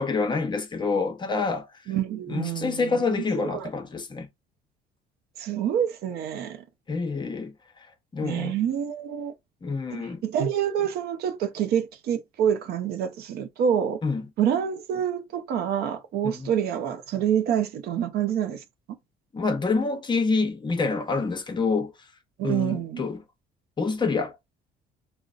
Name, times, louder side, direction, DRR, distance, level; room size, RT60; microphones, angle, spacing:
voice 1, 0.0-1.7 2.3-4.3 6.9-7.5 8.1-8.6 9.6-10.2 14.0-14.3 16.2-16.5 19.3-21.9 22.4-23.2 23.8-24.4, left 4 dB, 25° left, 0.7 m, -27 dB
voice 2, 1.9-3.7 5.4-6.6 8.2-9.3 9.9-14.0 14.4-18.6 22.4-23.1, right 9 dB, 70° right, 0.5 m, -27 dB
3.8 x 2.0 x 2.4 m
cardioid pair, 110°, 17 cm